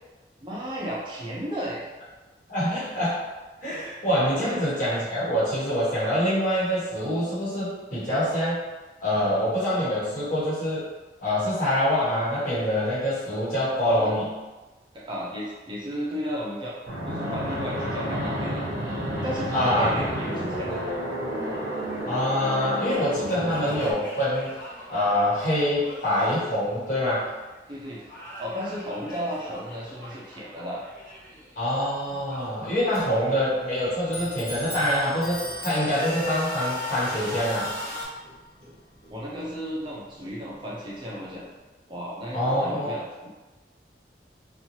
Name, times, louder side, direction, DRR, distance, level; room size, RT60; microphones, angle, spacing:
voice 1, 0.4-1.9 4.4-4.7 13.8-14.1 14.9-16.8 17.1-18.7 19.2-20.8 27.7-28.0 28.4-30.8 32.1-32.2 33.0-33.2 39.1-41.4 41.9-43.3, equal, 25° right, -5 dB, 0.4 m, -34 dB
voice 2, 2.5-3.2 3.6-8.6 9.0-10.9 11.2-14.2 19.5-19.9 22.1-24.5 24.9-27.3 31.6-37.7 42.3-42.9, equal, 45° left, -10 dB, 1.2 m, -25 dB
Fixed-wing aircraft airplane, 16.9-23.9, equal, 55° right, 0.7 m, -30 dB
sound 1, 19.5-27.5 27.8-31.6 31.8-34.5 35.0-38.1, left 1 dB, 10° left, 1.0 m, -41 dB
Clock, 32.5-41.6, equal, 75° left, 1.0 m, -43 dB
3.0 x 2.2 x 2.7 m, 1.2 s
head